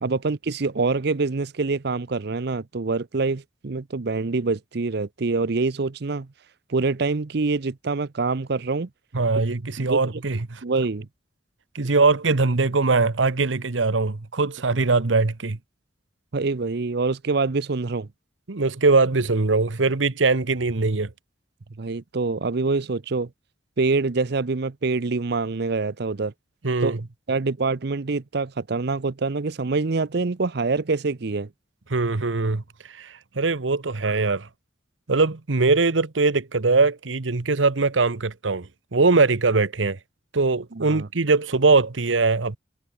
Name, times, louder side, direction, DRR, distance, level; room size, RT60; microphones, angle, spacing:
voice 1, 0.0-6.3 6.7-8.9 9.8-10.0 10.6-11.1 16.3-18.1 21.8-23.3 23.8-26.3 26.8-26.9 27.3-31.5 40.7-41.1, right 3 dB, 60° right, 0.7 m, -25 dB
voice 2, 9.1-10.6 11.7-15.6 18.5-21.1 26.6-27.0 31.9-32.6 32.9-34.5 35.1-40.0 40.3-42.6, right 3 dB, 80° right, 1.0 m, -21 dB
head